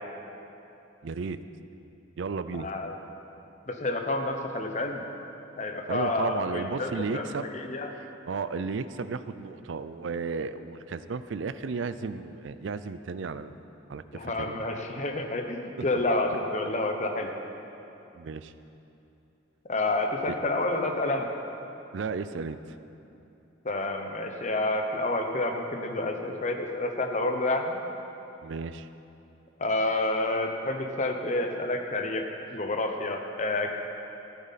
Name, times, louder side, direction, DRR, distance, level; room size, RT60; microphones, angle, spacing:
voice 1, 1.0-1.4 2.2-2.7 5.9-7.5 7.9-13.6 13.9-14.6 15.8-16.1 18.1-18.5 20.3-20.4 21.9-22.6 28.4-28.9, right 4 dB, 75° right, 13 dB, 0.4 m, -34 dB
voice 2, 2.6-2.9 3.7-5.0 5.6-7.9 14.1-17.3 19.7-21.3 23.6-27.8 29.6-32.3 32.5-33.7, left 2 dB, 40° left, 4 dB, 0.9 m, -29 dB
14.0 x 9.4 x 4.1 m, 2.9 s
head